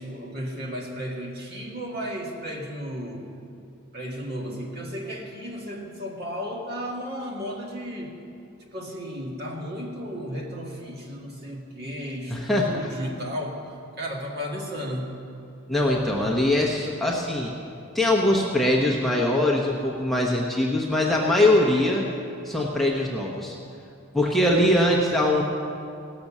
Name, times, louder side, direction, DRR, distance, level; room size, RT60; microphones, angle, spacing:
voice 1, 0.0-3.3 3.9-8.1 8.7-13.6 14.0-15.2, equal, 50° right, -1 dB, 2.0 m, -34 dB
voice 2, 12.3-12.9 15.7-17.5 17.9-22.1 22.4-23.6 24.1-25.4, left 1 dB, ahead, -3 dB, 0.9 m, -22 dB
17.5 x 6.7 x 7.3 m, 2.5 s
head